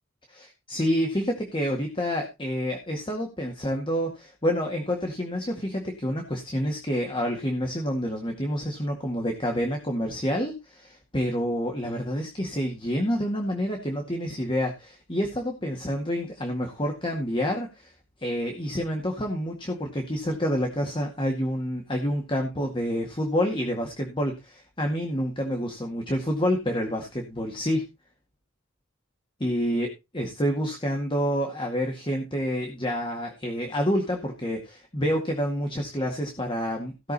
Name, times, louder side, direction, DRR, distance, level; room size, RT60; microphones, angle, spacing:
voice 1, 0.3-17.9 18.2-27.8 29.4-37.1, equal, 25° left, 2 dB, 2.0 m, -28 dB
17.0 x 6.5 x 4.1 m, 0.26 s
head